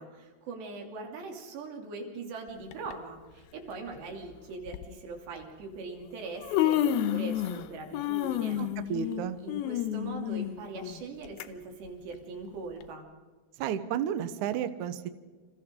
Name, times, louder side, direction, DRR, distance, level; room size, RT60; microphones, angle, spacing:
voice 1, 0.0-8.6 9.4-13.0, right 3 dB, 90° right, 2 dB, 5.1 m, -41 dB
Human voice, 2.7-2.9 4.0-4.1 4.7-4.9 5.9-6.0 6.3-7.7 7.9-11.4 11.9-12.0 12.8-12.9, left 11 dB, 75° left, 2.6 m, -30 dB
voice 2, 8.6-9.4 13.6-15.1, right 9 dB, 70° right, 11 dB, 1.9 m, -32 dB
29.5 x 27.0 x 3.8 m, 1.4 s
omnidirectional pair, 4.8 m